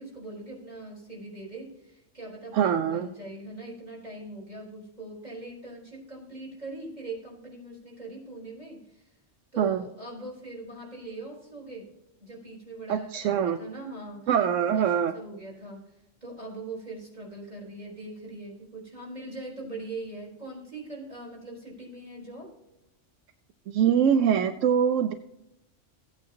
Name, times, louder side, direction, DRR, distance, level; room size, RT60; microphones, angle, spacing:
voice 1, 0.0-9.1 9.5-11.9 12.2-14.3 14.7-15.9 16.2-22.5, right 2 dB, 35° right, -3 dB, 4.1 m, -41 dB
voice 2, 2.5-3.1 9.6-9.8 12.9-13.6 14.3-15.1 23.7-25.1, right 8 dB, 80° right, 9 dB, 1.0 m, -23 dB
16.0 x 8.9 x 2.8 m, 0.87 s
omnidirectional pair, 1.3 m